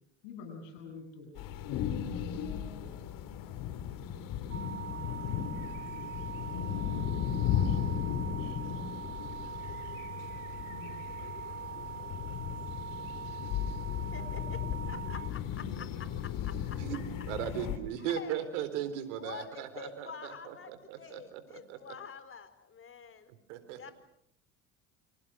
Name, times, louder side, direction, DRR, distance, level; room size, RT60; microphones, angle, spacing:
voice 1, 0.2-3.2 4.1-5.3 5.8-8.7 9.0-10.0 10.4-11.1, left 4 dB, 80° left, 5 dB, 7.2 m, -51 dB
sound 1, 1.4-17.8, left 9 dB, 65° left, 2.9 m, -36 dB
sound 2, 4.5-15.3, right 8 dB, 35° right, 1.4 m, -43 dB
voice 2, 14.1-14.6 14.9-15.9 16.2-16.8 18.0-18.5 19.2-23.3 23.8-23.9, left 6 dB, 35° left, 12 dB, 4.2 m, -47 dB
voice 3, 16.7-21.4 21.7-22.0 23.3-23.9, right 9 dB, 80° right, 12 dB, 4.0 m, -38 dB
29.5 x 26.5 x 6.4 m, 0.74 s
hypercardioid pair, 75°, 36 cm